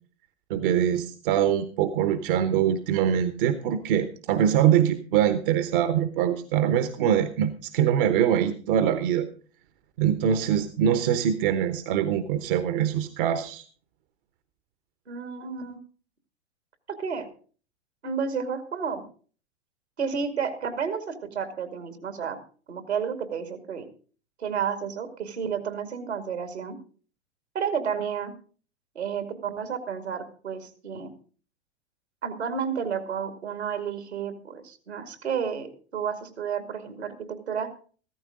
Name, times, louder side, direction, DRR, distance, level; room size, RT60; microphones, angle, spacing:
voice 1, 0.5-9.3 10.0-13.6, right 9 dB, 55° right, 11 dB, 1.1 m, -23 dB
voice 2, 15.1-15.8 16.9-17.3 18.0-19.0 20.0-22.4 22.7-23.9 24.4-26.8 27.5-28.3 28.9-31.1 32.2-37.7, right 7 dB, 80° right, 8 dB, 2.4 m, -31 dB
14.5 x 13.5 x 3.8 m, 0.40 s
figure-of-eight pair, 95°, 33 cm